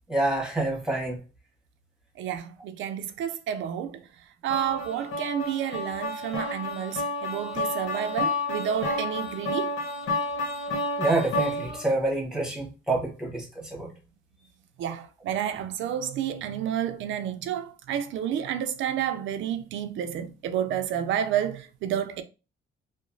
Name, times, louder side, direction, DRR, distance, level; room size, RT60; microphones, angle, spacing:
voice 1, 0.1-1.2 11.0-13.9, right 2 dB, 5° right, 1.1 m, -27 dB
voice 2, 2.2-4.0 4.4-9.7 14.8-22.2, right 9 dB, 75° right, 0.4 m, -30 dB
sound 1, 4.5-11.9, left 2 dB, 80° left, 1.0 m, -30 dB
2.9 x 2.0 x 2.5 m
cardioid pair, 90°, 20 cm